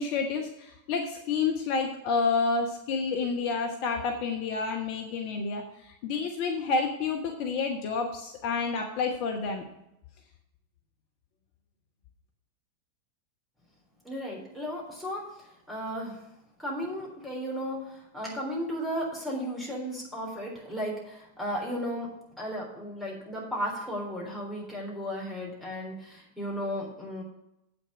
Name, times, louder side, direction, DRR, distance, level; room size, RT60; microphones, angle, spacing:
voice 1, 0.0-9.6, left 4 dB, 45° left, 3 dB, 1.1 m, -29 dB
voice 2, 14.0-15.2 15.7-16.2 16.6-22.1 22.4-27.2, equal, ahead, -4 dB, 3.7 m, -34 dB
8.3 x 6.1 x 7.1 m, 0.86 s
figure-of-eight pair, 90°, 0 cm